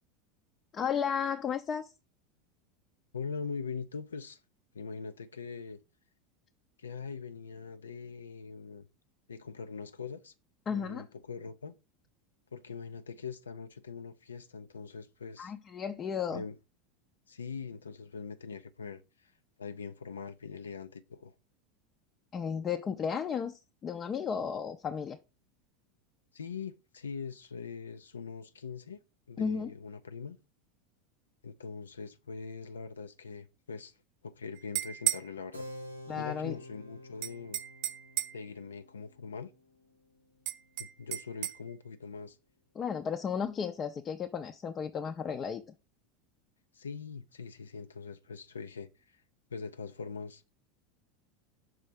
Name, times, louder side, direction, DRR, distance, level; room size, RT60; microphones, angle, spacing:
voice 1, 0.7-1.9 10.7-11.0 15.4-16.4 22.3-25.2 29.4-29.7 36.1-36.6 42.8-45.6, left 7 dB, 30° left, 0.5 m, -34 dB
voice 2, 3.1-4.4 4.7-5.8 6.8-8.8 9.3-10.3 10.7-11.7 12.5-15.5 16.3-16.6 17.3-19.3 19.6-21.3 26.3-29.0 29.3-30.4 31.4-33.9 34.2-35.7 36.1-37.6 38.3-39.5 40.8-42.4 46.7-49.2 49.5-50.4, left 5 dB, 80° left, 0.4 m, -42 dB
sound 1, 34.6-35.3 37.2-38.5 40.5-41.6, right 14 dB, 55° right, 0.4 m, -34 dB
Keyboard (musical), 35.5-41.6, left 1 dB, 90° right, 0.9 m, -50 dB
6.2 x 4.1 x 4.9 m
figure-of-eight pair, 80°, 0 cm